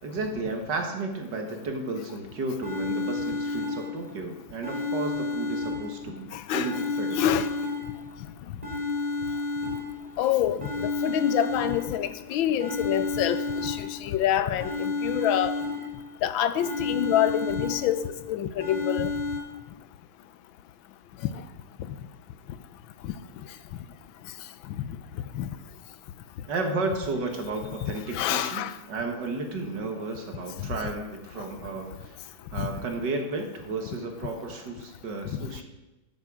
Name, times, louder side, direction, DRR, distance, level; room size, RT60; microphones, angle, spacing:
voice 1, 0.0-7.3 26.5-32.2 32.5-35.6, right 3 dB, 65° right, 2.1 m, -33 dB
sound 1, 2.2-2.3 2.6-4.2 4.6-6.2 6.6-8.2 8.6-10.2 10.6-12.2 12.6-14.2 14.6-16.2 16.6-18.2 18.6-19.4, left 3 dB, 20° right, 2.2 m, -31 dB
voice 2, 6.3-6.8 7.1-7.5 10.2-15.5 16.2-19.1 23.0-23.1 24.8-24.9 25.3-25.5 27.8-28.7 30.6-30.8 32.6-32.7 35.3-35.4, left 10 dB, 90° left, 1.5 m, -27 dB
11.5 x 7.5 x 6.2 m
omnidirectional pair, 2.1 m